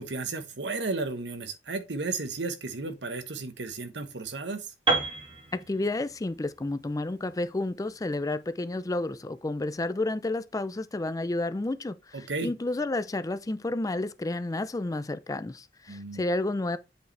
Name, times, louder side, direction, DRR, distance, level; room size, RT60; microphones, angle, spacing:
voice 1, 0.0-4.7 12.1-12.5 15.9-16.2, right 3 dB, 70° right, 1.1 m, -34 dB
Piano, 4.9-8.8, right 3 dB, 30° right, 1.9 m, -32 dB
voice 2, 5.5-16.8, left 2 dB, 20° left, 0.4 m, -31 dB
8.1 x 5.2 x 3.2 m
head